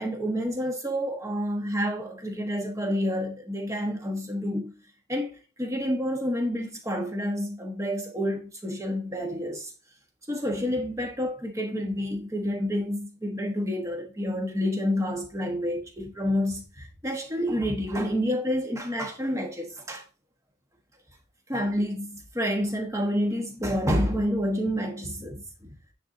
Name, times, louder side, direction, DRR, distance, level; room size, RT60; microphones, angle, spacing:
voice 1, 0.0-4.7 5.1-9.7 10.3-20.0 21.5-25.7, equal, 15° right, 1.2 m, -29 dB
9.5 x 3.9 x 2.7 m
head